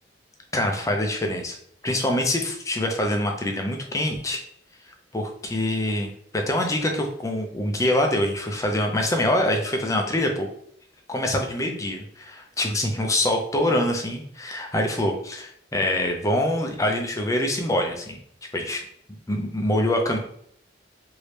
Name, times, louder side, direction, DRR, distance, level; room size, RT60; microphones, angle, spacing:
voice 1, 0.5-1.6 1.8-4.4 5.1-10.5 11.1-18.2 18.5-18.8 19.1-20.2, left 1 dB, 15° left, 2 dB, 0.5 m, -25 dB
3.1 x 2.7 x 3.2 m, 0.65 s
head